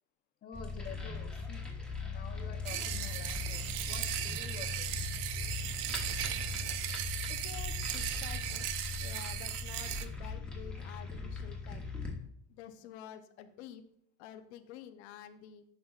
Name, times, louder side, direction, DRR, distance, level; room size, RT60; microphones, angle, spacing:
voice 1, 0.4-1.7 2.0-4.9, left 6 dB, 30° left, 5 dB, 0.8 m, -49 dB
sound 1, 0.5-12.1, left 4 dB, 5° left, 1.1 m, -39 dB
sound 2, 2.6-10.0, right 12 dB, 65° right, 0.6 m, -37 dB
voice 2, 7.3-8.7 9.0-11.9 12.5-13.8 14.2-15.6, left 10 dB, 85° left, 8 dB, 0.7 m, -49 dB
10.0 x 5.4 x 2.4 m, 0.73 s
cardioid pair, 145°, 32 cm